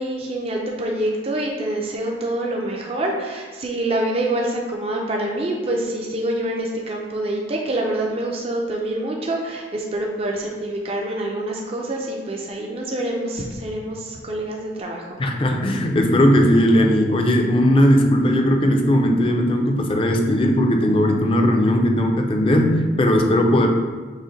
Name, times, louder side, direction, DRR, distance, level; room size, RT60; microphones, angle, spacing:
voice 1, 0.0-15.2, right 1 dB, 35° right, -1 dB, 0.4 m, -26 dB
voice 2, 15.2-23.7, equal, 30° left, 3 dB, 0.4 m, -18 dB
6.1 x 2.1 x 3.9 m, 1.4 s
head